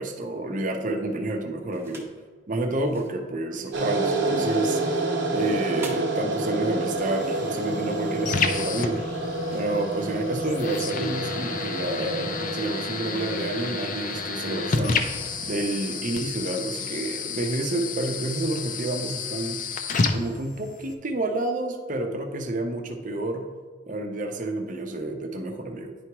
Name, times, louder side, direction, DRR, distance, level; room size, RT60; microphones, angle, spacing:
voice 1, 0.0-2.1 2.5-9.0 9.5-19.6 20.1-23.5 23.9-26.0, right 2 dB, 45° right, 4 dB, 0.7 m, -29 dB
sound 1, 1.7-2.2 2.7-10.6, right 2 dB, 15° right, 0.8 m, -47 dB
sound 2, 3.7-16.0, right 2 dB, 85° right, 1.0 m, -29 dB
sound 3, 6.9-20.9, left 4 dB, 45° left, 0.5 m, -31 dB
10.0 x 4.6 x 2.9 m, 1.5 s
head